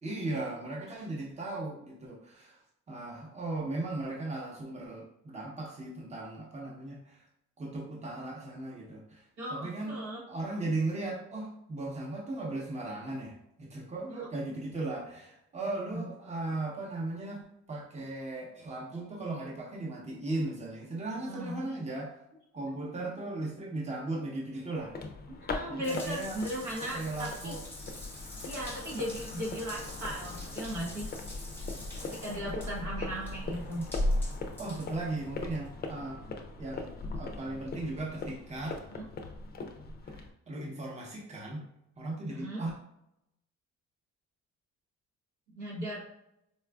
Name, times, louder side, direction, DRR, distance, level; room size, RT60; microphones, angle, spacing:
voice 1, 0.0-2.6 2.9-7.2 7.6-9.2 9.5-9.9 10.3-17.4 17.7-22.1 22.5-24.9 25.7-26.4 26.9-27.6 34.6-36.2 36.5-38.8 40.1-41.6 42.0-42.7, right 2 dB, 25° right, -2 dB, 0.8 m, -37 dB
voice 2, 9.4-10.2 14.1-14.3 15.6-16.1 21.0-21.6 25.3-27.5 28.4-31.1 32.1-33.8 38.9-39.1 42.3-42.6 45.5-46.0, equal, 80° right, -3 dB, 1.2 m, -37 dB
sound 1, 24.8-40.3, left 3 dB, 35° left, 0.4 m, -41 dB
Water tap faucet / Bathtub (filling or washing) / Drip, 25.8-35.7, left 1 dB, 5° left, 1.1 m, -39 dB
4.1 x 2.3 x 2.3 m, 0.80 s
cardioid pair, 90°, 30 cm